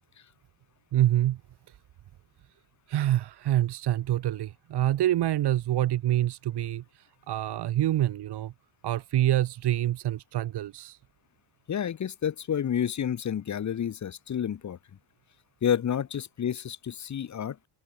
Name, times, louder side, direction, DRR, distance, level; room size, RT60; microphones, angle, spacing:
voice 1, 0.9-1.4 1.7-1.8 2.9-8.5 8.8-11.0, right 13 dB, 55° right, 1.4 m, -26 dB
voice 2, 11.7-14.8 15.6-17.6, left 9 dB, 35° left, 1.4 m, -29 dB
open air
cardioid pair, 150°, 47 cm